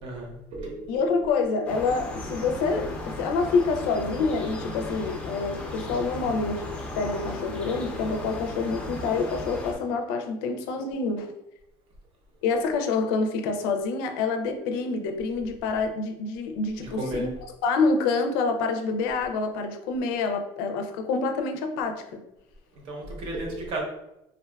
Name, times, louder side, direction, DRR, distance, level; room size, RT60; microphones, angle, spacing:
voice 1, 0.0-1.0 16.8-17.3 22.7-23.8, right 2 dB, 50° right, 0 dB, 0.8 m, -34 dB
voice 2, 0.9-11.3 12.4-17.3 17.6-22.2, left 4 dB, 85° left, 5 dB, 0.4 m, -27 dB
sound 1, 1.7-9.8, left 2 dB, 10° left, 0.4 m, -36 dB
3.5 x 2.2 x 2.2 m, 0.86 s
cardioid pair, 150°, 11 cm